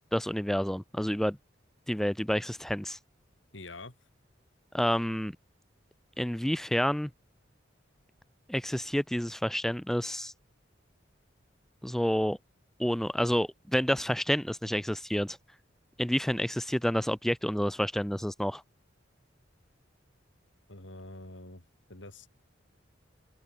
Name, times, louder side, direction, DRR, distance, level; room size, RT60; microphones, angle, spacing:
voice 1, 0.1-1.4 1.9-3.0 4.7-5.4 6.2-7.1 8.5-10.3 11.8-12.4 12.8-15.4 16.0-18.6, equal, ahead, 0.4 m, -29 dB
voice 2, 3.5-3.9 20.7-21.6 21.9-22.3, left 2 dB, 85° left, 3.4 m, -45 dB
head